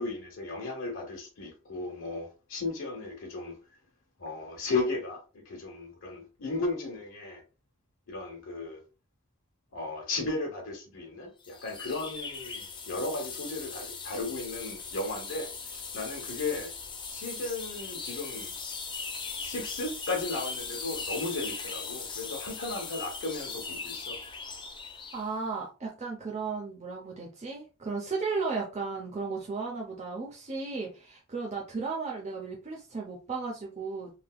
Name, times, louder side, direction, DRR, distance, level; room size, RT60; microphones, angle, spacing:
voice 1, 0.0-3.5 4.2-7.4 8.1-8.8 9.7-15.5 15.9-16.7 17.1-18.5 19.4-24.2, left 3 dB, 70° left, 0.9 m, -35 dB
sound 1, 11.4-25.3, left 4 dB, 25° left, 0.6 m, -39 dB
voice 2, 25.1-34.1, right 4 dB, 35° right, 0.6 m, -35 dB
3.2 x 2.8 x 2.2 m
head